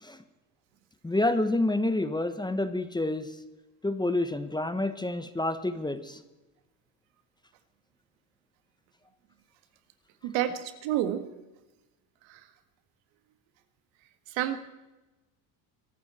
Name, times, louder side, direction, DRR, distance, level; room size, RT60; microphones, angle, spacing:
voice 1, 1.0-3.3 3.8-6.2, left 2 dB, 10° left, 11 dB, 1.2 m, -28 dB
voice 2, 10.2-11.3 12.3-12.5 14.3-14.6, right 12 dB, 75° right, 9 dB, 1.9 m, -29 dB
22.5 x 12.0 x 4.4 m, 1.0 s
supercardioid pair, 100°, 46 cm